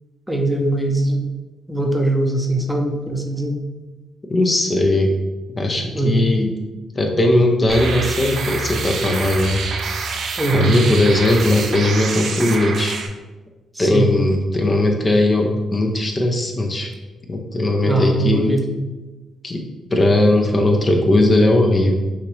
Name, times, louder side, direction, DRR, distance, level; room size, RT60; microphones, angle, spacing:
voice 1, 0.3-1.3 1.7-3.6 5.9-6.3 10.4-10.8 13.7-14.1 17.8-18.7, right 2 dB, 5° right, 2 dB, 0.7 m, -20 dB
voice 2, 4.3-5.1 5.5-6.6 6.9-9.6 10.5-13.0 13.8-16.9 17.3-18.5 19.4-19.6 19.9-21.9, left 1 dB, 35° left, 2 dB, 0.7 m, -18 dB
sound 1, 7.7-13.1, right 4 dB, 65° right, 0.5 m, -26 dB
5.7 x 2.6 x 3.2 m, 1.2 s
supercardioid pair, 60°, 0 cm